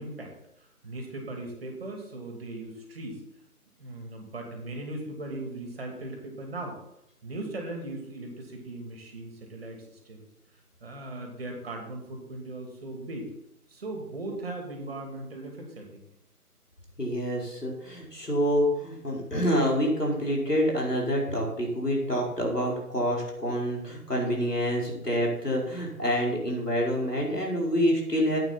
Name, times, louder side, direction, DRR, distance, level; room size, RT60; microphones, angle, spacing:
voice 1, 0.0-3.2 3.8-6.8 7.2-10.2 10.8-13.3 13.7-16.0 27.3-27.4, right 2 dB, 40° right, 2 dB, 2.8 m, -38 dB
voice 2, 17.0-28.4, equal, 85° left, -2 dB, 4.6 m, -27 dB
11.0 x 8.9 x 4.1 m, 0.78 s
figure-of-eight pair, 150°, 46 cm